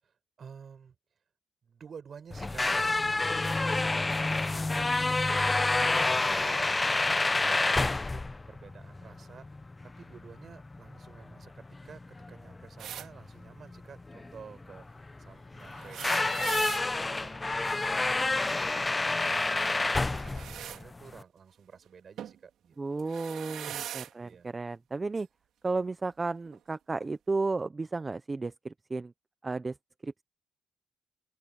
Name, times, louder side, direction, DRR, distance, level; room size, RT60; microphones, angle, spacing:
voice 1, 0.0-1.0 1.6-2.7 3.2-14.9 15.2-18.8 19.1-23.1 23.7-24.5, right 6 dB, 50° right, 7.9 m, -51 dB
sound 1, 2.3-21.2, left 2 dB, 20° left, 0.9 m, -29 dB
sound 2, 12.8-13.1 15.7-16.8 20.1-20.8 22.2-22.4 23.0-24.1 25.2-25.3 26.5-26.6, right 10 dB, 75° right, 4.9 m, -40 dB
voice 2, 22.8-25.3 25.6-29.1 29.4-29.7 30.0-30.2, right 3 dB, 25° right, 0.9 m, -33 dB
open air
cardioid pair, 90°, 0 cm